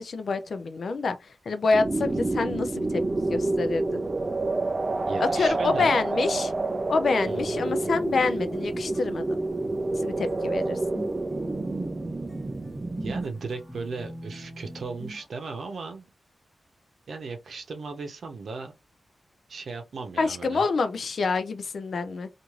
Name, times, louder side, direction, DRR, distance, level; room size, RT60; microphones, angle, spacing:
voice 1, 0.0-3.0 3.3-4.0 5.2-6.5 6.9-9.4 10.0-11.0 20.2-22.3, left 4 dB, 70° left, 0.4 m, -27 dB
sound 1, 1.7-13.2, right 2 dB, 30° right, 0.3 m, -28 dB
voice 2, 5.1-6.0 7.3-7.6 13.0-16.1 17.1-18.7 19.5-20.6, right 4 dB, 75° right, 0.7 m, -36 dB
sound 2, 7.2-15.3, equal, 10° left, 1.0 m, -42 dB
3.1 x 2.5 x 2.4 m
wide cardioid pair, 95°, 0 cm